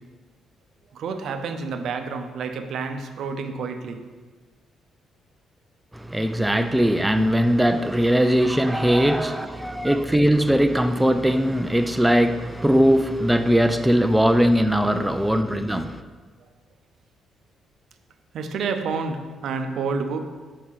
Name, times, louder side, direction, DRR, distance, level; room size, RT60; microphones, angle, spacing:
voice 1, 0.9-4.0 8.2-9.8 18.3-20.2, right 5 dB, 70° right, 0.6 m, -30 dB
voice 2, 5.9-16.0, equal, 5° right, 0.3 m, -20 dB
4.7 x 4.5 x 5.7 m
cardioid pair, 90°, 0 cm